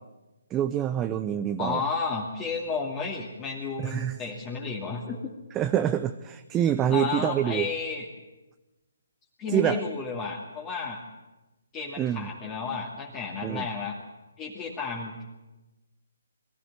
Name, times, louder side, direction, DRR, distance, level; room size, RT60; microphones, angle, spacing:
voice 1, 0.5-1.8 3.8-4.2 5.5-7.7 9.5-9.8 12.0-12.3 13.4-13.7, right 10 dB, 15° right, 9 dB, 0.7 m, -26 dB
voice 2, 1.6-5.2 6.9-8.0 9.4-11.0 11.7-13.9 14.4-15.2, left 5 dB, 20° left, -2 dB, 2.5 m, -32 dB
22.0 x 14.5 x 9.8 m, 1.1 s
hypercardioid pair, 150°, 0 cm